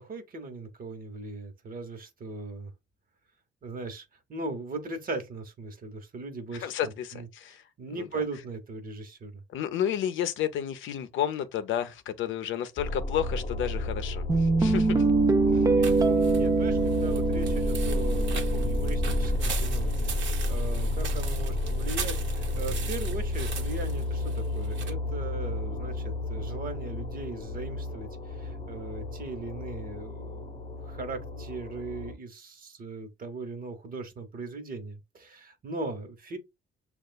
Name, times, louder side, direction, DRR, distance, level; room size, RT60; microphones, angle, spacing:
voice 1, 0.0-2.7 3.6-9.4 15.5-36.4, right 3 dB, 45° right, 1.0 m, -39 dB
voice 2, 6.6-7.6 8.0-8.1 9.5-15.0, left 10 dB, 75° left, 0.5 m, -31 dB
sound 1, 12.8-32.1, left 2 dB, 35° left, 0.7 m, -31 dB
Guitar, 14.3-19.4, right 3 dB, 20° right, 0.4 m, -24 dB
sound 2, 15.8-24.9, right 6 dB, 70° right, 1.0 m, -40 dB
6.5 x 2.3 x 2.2 m
cardioid pair, 90°, 20 cm